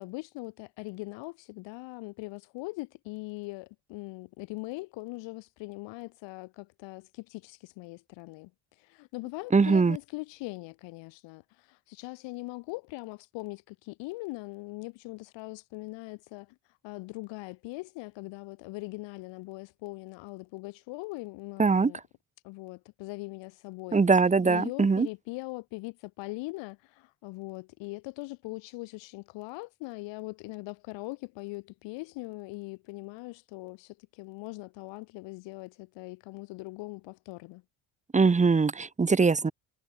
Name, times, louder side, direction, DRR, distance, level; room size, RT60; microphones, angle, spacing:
voice 1, 0.0-22.0 22.4-24.0 24.4-37.6, left 23 dB, 80° left, 7.9 m, -41 dB
voice 2, 9.5-10.0 21.6-21.9 23.9-25.1 38.1-39.5, right 4 dB, 15° right, 0.8 m, -22 dB
supercardioid pair, 65°, 43 cm